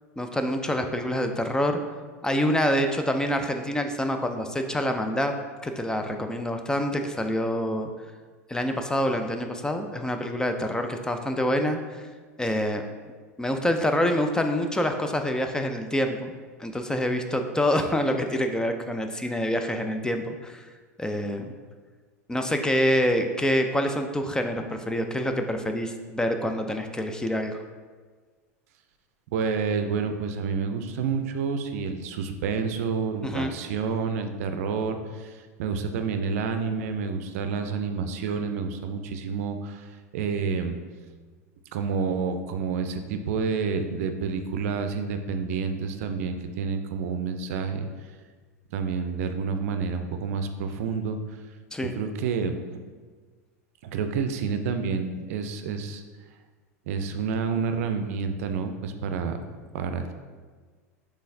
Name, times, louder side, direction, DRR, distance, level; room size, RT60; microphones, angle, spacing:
voice 1, 0.2-1.8 2.2-5.3 5.6-7.9 8.5-12.1 12.4-12.8 13.4-16.3 16.6-20.7 21.0-21.5 22.3-27.6 33.2-33.5 51.7-52.0, equal, 10° left, 5 dB, 0.3 m, -26 dB
voice 2, 29.3-40.8 41.7-47.9 48.7-51.2 52.0-52.5 53.8-56.0 56.9-59.4 59.7-60.1, right 5 dB, 65° right, 7 dB, 0.4 m, -29 dB
5.5 x 3.4 x 2.6 m, 1.5 s
hypercardioid pair, 95°, 8 cm